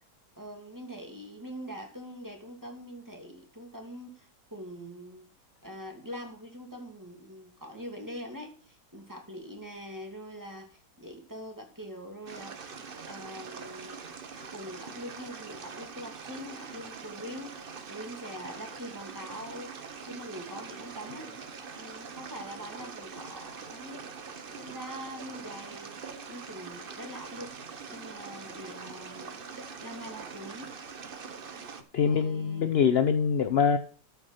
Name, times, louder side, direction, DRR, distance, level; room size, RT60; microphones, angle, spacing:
voice 1, 0.4-5.3 5.6-12.8 13.1-14.1 14.5-19.7 20.1-21.3 21.7-24.1 24.6-25.9 26.3-27.5 27.9-29.4 29.8-30.7 32.0-32.7, equal, 10° right, 2.2 m, -43 dB
sound 1, 12.3-31.8, right 5 dB, 40° right, 0.9 m, -43 dB
voice 2, 31.9-33.8, left 7 dB, 70° left, 0.6 m, -24 dB
13.0 x 5.7 x 5.7 m
omnidirectional pair, 1.9 m